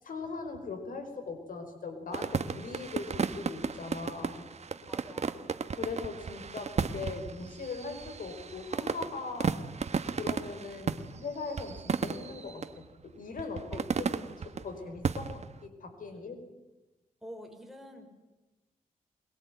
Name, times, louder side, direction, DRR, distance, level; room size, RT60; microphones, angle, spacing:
voice 1, 0.0-4.4 5.7-9.5 10.1-16.4, left 4 dB, 80° left, 7 dB, 5.0 m, -40 dB
sound 1, 2.1-12.7 13.4-14.6 15.0-15.6, right 5 dB, 50° right, 1.3 m, -34 dB
voice 2, 4.9-5.4 13.7-13.8 17.2-18.1, equal, ahead, 4 dB, 5.1 m, -47 dB
22.5 x 22.5 x 9.4 m, 1.1 s
wide cardioid pair, 100°, 14 cm